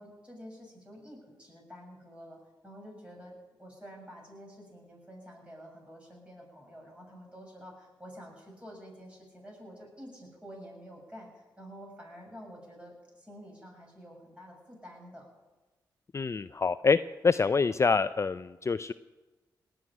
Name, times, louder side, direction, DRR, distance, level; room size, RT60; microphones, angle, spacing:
voice 1, 0.0-2.4 2.6-15.3, equal, 15° right, -1 dB, 6.9 m, -49 dB
voice 2, 16.1-17.0 17.2-18.9, left 4 dB, 35° left, 14 dB, 0.4 m, -26 dB
18.5 x 6.3 x 9.9 m, 1.2 s
supercardioid pair, 50°, 8 cm